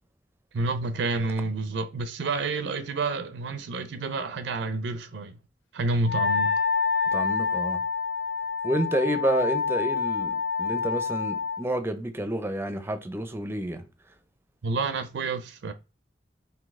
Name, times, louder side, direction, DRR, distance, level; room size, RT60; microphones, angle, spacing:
voice 1, 0.5-5.4 5.7-6.5 14.6-15.7, right 3 dB, 75° right, 0.4 m, -29 dB
Wind instrument woodwind instrument, 6.0-11.6, left 5 dB, 75° left, 0.4 m, -27 dB
voice 2, 7.1-7.8 8.6-13.8, right 1 dB, 15° right, 0.5 m, -29 dB
4.1 x 2.7 x 3.5 m
head